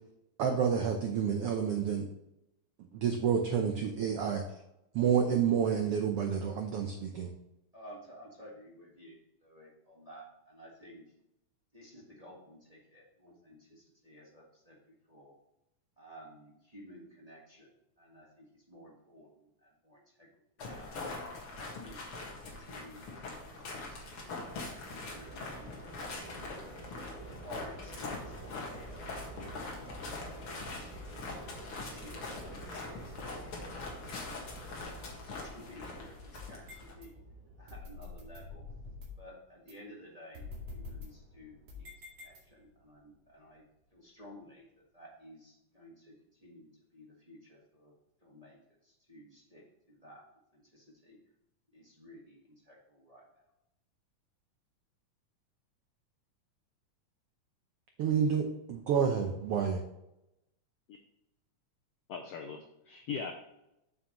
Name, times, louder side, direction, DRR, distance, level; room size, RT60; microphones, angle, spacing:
voice 1, 0.4-2.0 2.9-4.4 4.9-7.3 58.0-59.8, right 7 dB, 80° right, 4 dB, 1.3 m, -29 dB
voice 2, 7.7-11.0 11.7-15.3 16.0-19.3 19.6-20.3 20.6-20.9 21.5-22.1 22.5-24.1 24.4-26.5 27.4-31.3 31.8-33.5 33.9-34.6 35.0-37.2 37.6-38.6 39.2-41.9 42.2-43.6 43.9-44.7 44.9-47.9 48.2-50.2 50.5-51.2 51.7-53.5, equal, 30° right, -4 dB, 0.7 m, -54 dB
sound 1, 20.6-36.9, left 3 dB, 50° left, 2.3 m, -43 dB
sound 2, 22.9-39.0, right 2 dB, 10° right, 2.9 m, -50 dB
sound 3, 36.3-37.1 37.7-39.3 39.7-39.8 40.3-42.8, left 3 dB, 55° right, 3.2 m, -46 dB
voice 3, 62.1-63.3, left 6 dB, 85° left, 3 dB, 1.3 m, -39 dB
8.2 x 7.5 x 3.1 m, 0.87 s
omnidirectional pair, 3.6 m